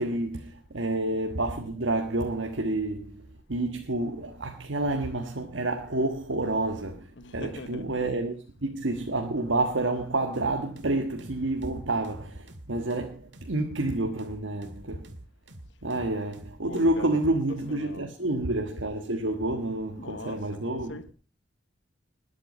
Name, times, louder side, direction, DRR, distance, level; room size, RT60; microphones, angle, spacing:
voice 1, 0.0-8.3 8.6-15.1 15.8-21.0, right 2 dB, 85° right, 1.5 m, -29 dB
voice 2, 7.1-7.9 16.7-18.1 19.9-21.1, left 2 dB, 70° left, 1.0 m, -42 dB
sound 1, 10.3-17.0, right 1 dB, 65° right, 1.9 m, -47 dB
20.5 x 8.2 x 5.4 m
head